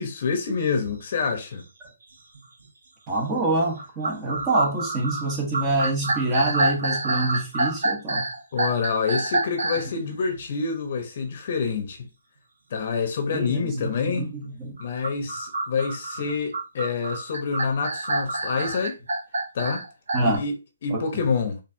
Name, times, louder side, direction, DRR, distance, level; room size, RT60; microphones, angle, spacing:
voice 1, 0.0-1.6 8.5-12.1 12.7-14.3 14.8-19.0 19.5-19.9 20.2-20.5 20.8-21.6, left 5 dB, 50° left, 0.9 m, -27 dB
sound 1, 0.8-1.0 1.6-1.7 2.3-2.7 3.8-9.9 14.8-20.4, right 2 dB, 80° right, 1.0 m, -27 dB
voice 2, 3.1-8.2 9.9-10.1 13.3-14.8 20.1-20.4 20.9-21.3, right 2 dB, 20° right, 1.1 m, -26 dB
4.5 x 2.6 x 2.7 m
hypercardioid pair, 155°, 0 cm